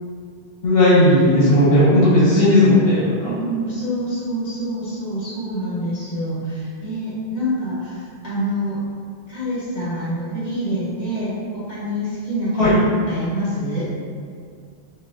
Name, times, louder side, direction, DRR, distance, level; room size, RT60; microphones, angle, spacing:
voice 1, 0.6-3.3 12.6-12.7, left 1 dB, 70° left, -10 dB, 1.2 m, -15 dB
voice 2, 3.2-8.8 9.3-12.7 13.1-13.9, equal, 40° left, -9 dB, 1.3 m, -26 dB
5.8 x 2.2 x 2.6 m, 2.2 s
omnidirectional pair, 1.1 m